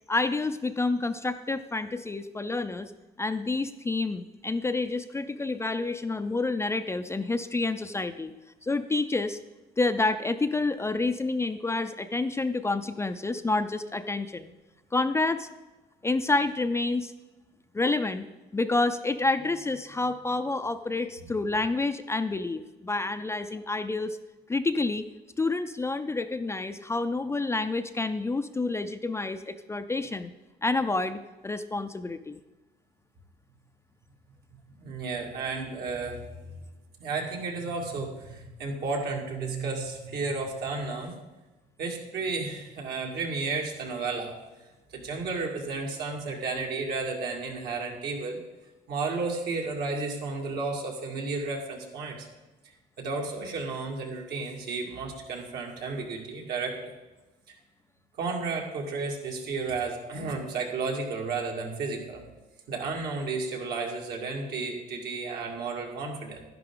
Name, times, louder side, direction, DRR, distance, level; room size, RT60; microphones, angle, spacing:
voice 1, 0.1-2.9 3.2-8.3 8.6-9.4 9.8-14.5 14.9-15.5 16.0-17.1 17.7-18.3 18.5-24.2 24.5-25.1 25.4-30.3 30.6-32.4, left 3 dB, 15° left, 9 dB, 0.4 m, -28 dB
voice 2, 34.8-36.6 37.0-41.2 41.8-44.4 44.9-48.4 48.9-52.3 53.0-56.9 57.5-57.6 58.2-62.2 62.7-66.4, right 3 dB, 70° right, 0 dB, 2.2 m, -32 dB
11.0 x 10.5 x 3.8 m, 1.1 s
cardioid pair, 110°, 17 cm